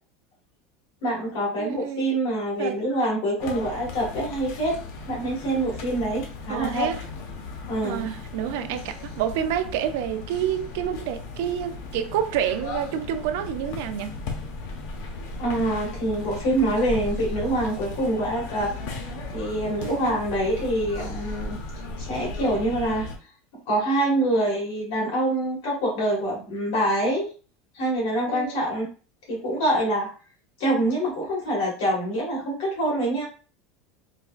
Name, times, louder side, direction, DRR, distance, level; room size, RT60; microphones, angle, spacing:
voice 1, 1.0-4.8 5.1-6.8 7.7-8.1 15.4-18.7 19.3-21.6 22.0-23.1 23.7-27.3 27.7-28.8 29.3-30.1 30.6-33.3, right 1 dB, 90° left, 1.6 m, -25 dB
voice 2, 1.6-2.1 2.6-2.9 6.5-7.0 7.8-14.1 19.8-20.2 28.3-28.7, right 9 dB, 70° right, 0.4 m, -28 dB
sound 1, 3.4-23.2, left 3 dB, 70° left, 0.7 m, -36 dB
4.0 x 2.4 x 2.4 m
cardioid pair, 165°, 0 cm